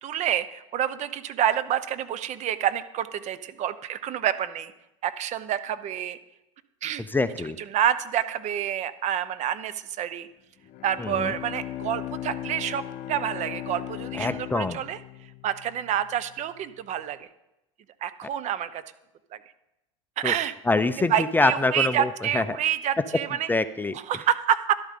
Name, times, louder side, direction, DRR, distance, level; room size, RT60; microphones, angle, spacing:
voice 1, 0.0-4.7 5.0-6.2 6.8-7.0 7.7-10.3 10.8-12.8 13.1-15.0 15.4-17.3 18.0-18.8 20.2-20.5 21.1-23.5 23.9-24.7, right 10 dB, 45° right, 13 dB, 0.9 m, -28 dB
voice 2, 7.1-7.6 11.0-11.3 14.2-14.8 20.2-20.3 20.7-22.6 23.5-23.9, left 3 dB, 10° left, 13 dB, 0.5 m, -25 dB
Bowed string instrument, 10.6-16.2, left 12 dB, 50° left, 1.1 m, -37 dB
12.0 x 11.5 x 3.8 m, 0.91 s
hypercardioid pair, 95°, 16 cm